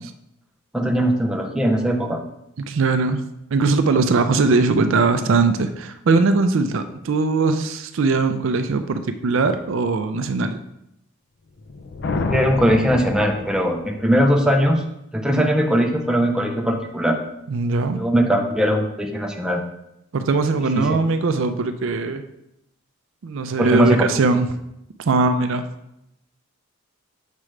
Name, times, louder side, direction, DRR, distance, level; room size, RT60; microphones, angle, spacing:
voice 1, 0.7-2.2 12.3-14.8 15.1-17.2 17.9-19.6 20.8-21.0 23.6-24.0, equal, 5° right, 1 dB, 0.5 m, -20 dB
voice 2, 2.7-10.6 15.3-15.5 17.5-18.0 20.1-22.2 23.2-24.5 25.1-25.7, right 3 dB, 60° right, 9 dB, 0.4 m, -20 dB
sound 1, 11.6-14.1, left 3 dB, 50° left, 0.4 m, -28 dB
7.4 x 4.9 x 3.2 m, 0.83 s
head